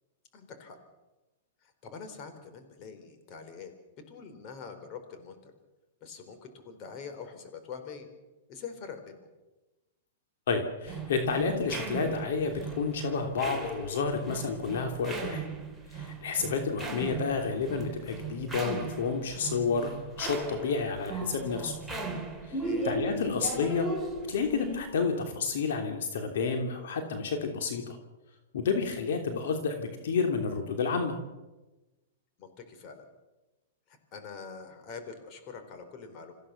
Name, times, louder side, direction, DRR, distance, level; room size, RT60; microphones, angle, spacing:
voice 1, 0.3-0.8 1.6-3.7 4.1-5.5 6.0-8.1 8.5-9.2 22.5-22.9 32.4-33.1 33.9-36.3, left 5 dB, 35° left, 7 dB, 4.1 m, -44 dB
voice 2, 10.5-15.4 15.9-21.7 22.4-23.9 24.3-28.0 28.5-31.1, left 5 dB, 70° left, 5 dB, 3.1 m, -30 dB
sound 1, 10.9-24.9, right 3 dB, ahead, 3.0 m, -37 dB
27.0 x 15.5 x 6.9 m, 1.1 s
hypercardioid pair, 135°, 0 cm